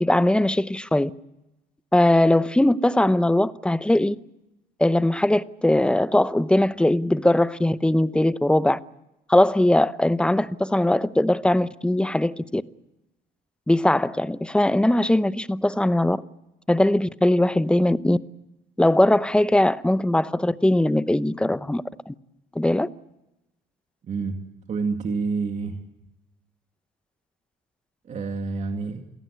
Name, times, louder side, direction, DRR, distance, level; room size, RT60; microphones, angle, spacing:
voice 1, 0.0-1.1 1.9-4.2 4.8-8.8 9.3-12.6 13.7-16.2 16.7-18.2 18.8-22.1 22.5-22.9, left 1 dB, 5° left, 0.8 m, -20 dB
voice 2, 24.0-24.4 24.7-25.8 28.1-29.0, right 4 dB, 45° right, 2.4 m, -28 dB
28.0 x 17.5 x 8.2 m
cardioid pair, 110°, 17 cm